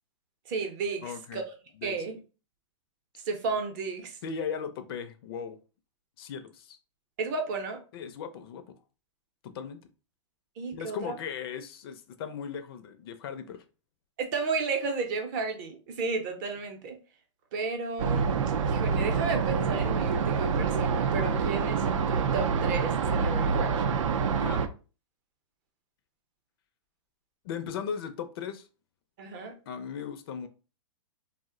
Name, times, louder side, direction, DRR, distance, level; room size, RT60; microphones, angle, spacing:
voice 1, 0.5-1.4 1.8-2.2 3.2-4.2 7.2-7.8 10.6-11.0 14.2-17.0 17.5-18.3 18.6-23.8 29.2-29.5, right 4 dB, 35° right, 4 dB, 0.6 m, -33 dB
voice 2, 1.0-1.4 1.8-2.1 4.2-5.6 6.2-6.8 7.9-8.6 9.4-9.8 10.7-13.6 24.4-24.6 27.4-28.7 29.7-30.5, left 7 dB, 50° left, 9 dB, 0.4 m, -37 dB
sound 1, 18.0-24.7, right 5 dB, 85° right, 0.4 m, -27 dB
2.5 x 2.1 x 3.6 m, 0.34 s
hypercardioid pair, 155°, 16 cm